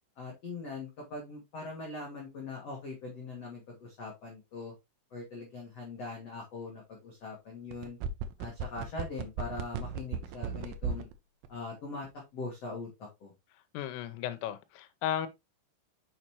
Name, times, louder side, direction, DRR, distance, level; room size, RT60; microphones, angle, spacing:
voice 1, 0.2-4.7 5.1-8.0 8.4-11.1 11.5-12.1 12.3-13.3, left 3 dB, 60° left, 1.6 m, -41 dB
sound 1, 7.7-11.1 11.4-11.5, right 6 dB, 80° right, 3.1 m, -35 dB
voice 2, 13.7-15.3, left 11 dB, 80° left, 3.4 m, -34 dB
6.9 x 6.6 x 3.0 m
omnidirectional pair, 5.9 m